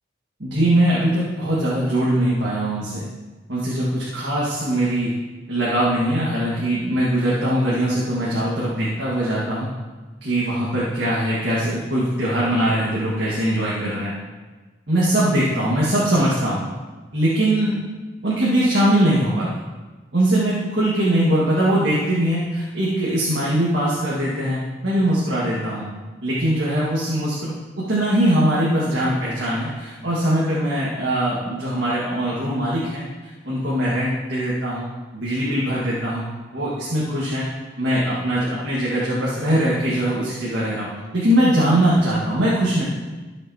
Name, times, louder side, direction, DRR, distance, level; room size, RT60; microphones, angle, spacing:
voice 1, 0.4-3.0 3.5-5.1 5.5-9.7 10.2-14.1 14.9-16.6 17.1-17.7 18.2-19.5 20.1-25.9 26.2-33.0 33.4-34.8 35.1-37.5 37.8-40.9 41.1-42.8, right 1 dB, 65° right, -7 dB, 1.8 m, -21 dB
13.5 x 6.9 x 2.9 m, 1.3 s
head